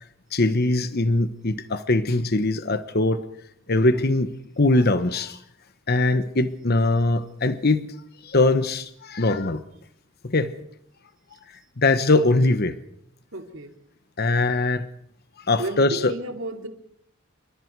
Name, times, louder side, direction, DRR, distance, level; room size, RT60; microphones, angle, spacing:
voice 1, 0.3-3.2 3.7-5.4 5.9-7.9 8.2-9.6 10.2-10.5 11.8-12.8 14.2-14.9 15.5-16.1, left 2 dB, 50° left, 11 dB, 1.1 m, -21 dB
voice 2, 13.3-13.7 15.6-16.7, right 2 dB, 65° right, 4 dB, 3.1 m, -32 dB
28.5 x 24.5 x 4.7 m, 0.69 s
head